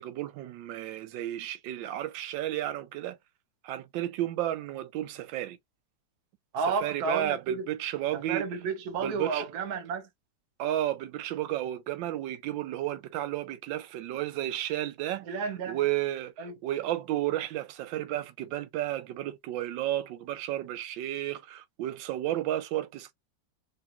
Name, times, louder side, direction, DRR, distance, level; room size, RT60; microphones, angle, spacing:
voice 1, 0.0-3.2 3.6-5.6 6.7-8.5 9.0-9.4 10.6-15.3 15.7-23.1, right 13 dB, 85° right, 1.3 m, -32 dB
voice 2, 6.5-7.7 8.1-10.1 15.2-15.8 16.4-16.5, right 5 dB, 60° right, 1.2 m, -32 dB
3.8 x 2.4 x 2.9 m
omnidirectional pair, 2.0 m